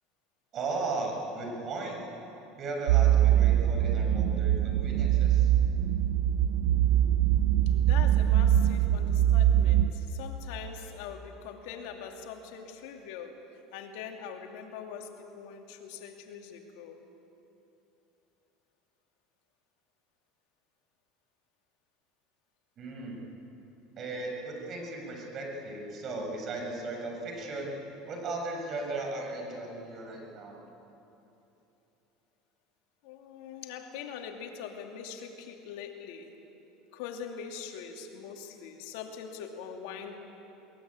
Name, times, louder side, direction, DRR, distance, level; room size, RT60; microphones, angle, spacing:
voice 1, 0.5-2.0 2.6-5.5 22.8-23.2 24.0-27.8 28.1-30.6, right 2 dB, 40° right, 1 dB, 6.9 m, -36 dB
sound 1, 2.9-9.9, right 11 dB, 85° right, 0.8 m, -23 dB
voice 2, 7.7-13.4 13.7-17.0 33.0-36.3 36.9-40.2, left 7 dB, 75° left, 3 dB, 2.7 m, -43 dB
22.0 x 21.0 x 8.9 m, 3.0 s
supercardioid pair, 115°, 0 cm